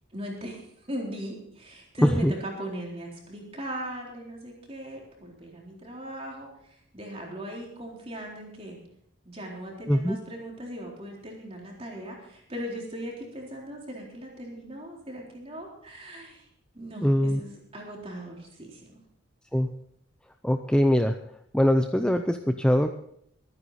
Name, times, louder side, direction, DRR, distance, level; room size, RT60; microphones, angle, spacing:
voice 1, 0.1-0.6 0.9-8.8 9.2-16.4 16.7-19.0, equal, 30° right, -1 dB, 4.0 m, -39 dB
voice 2, 2.0-2.3 9.9-10.2 17.0-17.4 19.5-19.7 20.4-21.2 21.5-23.0, equal, 5° left, 6 dB, 0.5 m, -22 dB
22.5 x 9.7 x 4.2 m, 0.71 s
head